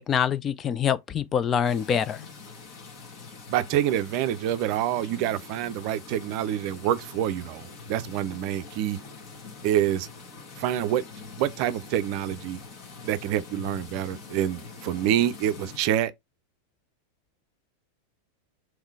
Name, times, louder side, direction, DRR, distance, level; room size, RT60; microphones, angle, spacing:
voice 1, 0.0-2.2, left 8 dB, 25° left, 0.4 m, -25 dB
sound 1, 1.6-15.8, left 4 dB, 40° left, 1.6 m, -44 dB
voice 2, 3.5-9.0 9.6-10.1 10.6-11.0 11.4-12.6 13.0-16.1, right 11 dB, 45° right, 0.5 m, -27 dB
3.6 x 3.1 x 4.7 m
figure-of-eight pair, 90°, 0 cm